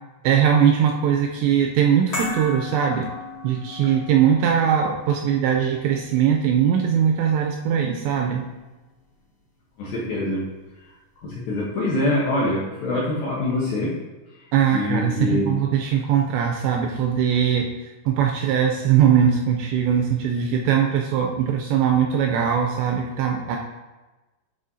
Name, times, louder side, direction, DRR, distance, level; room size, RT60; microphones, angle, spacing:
voice 1, 0.2-3.1 3.4-8.4 14.5-17.7 18.1-23.6, right 8 dB, 85° right, 1 dB, 2.6 m, -20 dB
sound 1, 2.1-8.5 8.8-8.9, left 3 dB, 35° left, 2.2 m, -37 dB
voice 2, 9.8-10.4 11.2-13.9 14.7-15.5, left 1 dB, 70° left, -6 dB, 2.3 m, -24 dB
11.0 x 5.0 x 2.7 m, 1.1 s
omnidirectional pair, 5.5 m